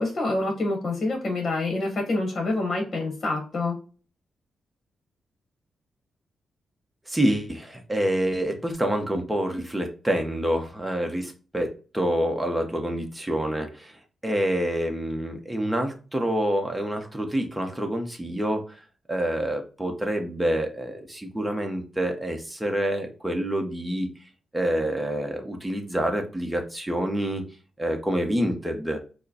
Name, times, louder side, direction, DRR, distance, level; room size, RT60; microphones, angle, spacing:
voice 1, 0.0-3.8, left 2 dB, 45° left, 2 dB, 1.0 m, -27 dB
voice 2, 7.1-11.7 11.9-18.8 19.1-24.1 24.5-27.5 27.8-29.0, right 1 dB, 10° right, 3 dB, 0.9 m, -27 dB
4.8 x 2.1 x 2.8 m, 0.36 s
cardioid pair, 95°, 0 cm